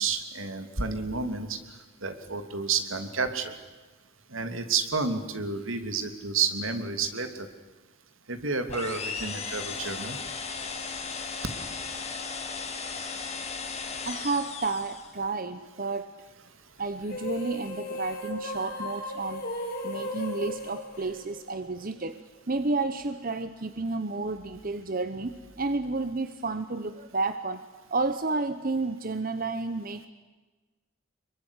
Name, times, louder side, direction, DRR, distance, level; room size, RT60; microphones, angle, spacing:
voice 1, 0.0-1.6 2.0-3.5 4.3-7.5 8.3-10.2, right 5 dB, 75° right, 8 dB, 2.8 m, -30 dB
sound 1, 8.7-15.2, left 5 dB, 30° left, 2.7 m, -36 dB
voice 2, 14.0-16.1 16.8-19.4 19.8-22.2 22.5-27.6 27.9-30.1, right 3 dB, 45° right, 10 dB, 1.0 m, -31 dB
sound 2, 17.0-21.7, left 1 dB, 45° left, 5.0 m, -36 dB
26.0 x 23.0 x 9.9 m, 1.2 s
head